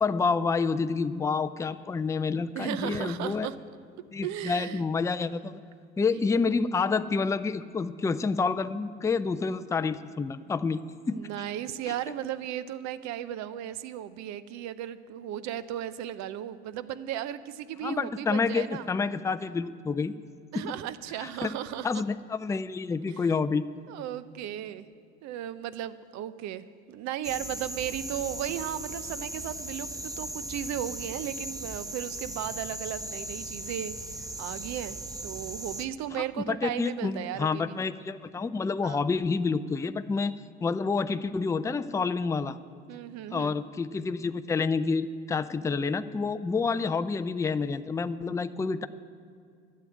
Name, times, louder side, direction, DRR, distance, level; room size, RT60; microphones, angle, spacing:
voice 1, 0.0-3.5 4.1-5.6 6.0-10.8 11.1-11.2 17.8-20.1 20.5-20.7 21.2-21.5 21.8-23.7 36.5-40.3 40.6-42.6 43.3-48.9, left 4 dB, 10° left, 12 dB, 0.4 m, -28 dB
voice 2, 2.5-3.6 4.2-4.8 6.1-6.2 11.1-18.9 20.5-22.0 23.1-23.4 23.9-24.9 25.2-35.0 35.2-37.8 38.8-39.0 42.9-43.6, right 11 dB, 60° right, 15 dB, 0.7 m, -35 dB
sound 1, 27.2-35.9, right 1 dB, 10° right, 0.9 m, -38 dB
12.0 x 7.7 x 9.3 m, 2.3 s
hypercardioid pair, 75°, 32 cm